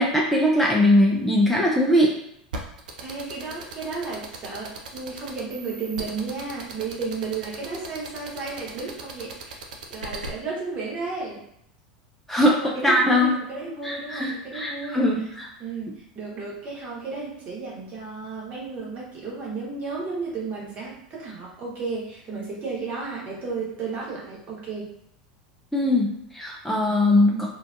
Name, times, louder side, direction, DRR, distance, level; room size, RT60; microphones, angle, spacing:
voice 1, 0.0-2.1 12.3-13.3 13.8-15.5 25.7-27.5, left 1 dB, 5° left, -3 dB, 0.4 m, -21 dB
sound 1, 2.5-10.3, right 3 dB, 80° right, 0.4 m, -37 dB
voice 2, 3.0-9.6 9.9-11.4 12.5-15.1 15.6-24.9 27.3-27.5, right 4 dB, 40° right, -4 dB, 1.1 m, -33 dB
2.5 x 2.5 x 2.3 m, 0.75 s
hypercardioid pair, 85°, 4 cm